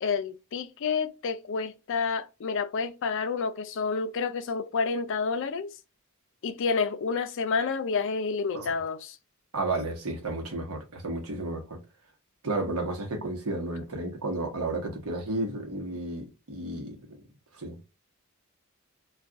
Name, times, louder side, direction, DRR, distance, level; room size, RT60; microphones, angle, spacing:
voice 1, 0.0-5.7 6.4-9.2, left 5 dB, 60° left, 0.4 m, -29 dB
voice 2, 9.5-11.8 12.4-17.2 17.5-17.8, right 2 dB, 85° right, 1.0 m, -32 dB
2.5 x 2.3 x 3.6 m
head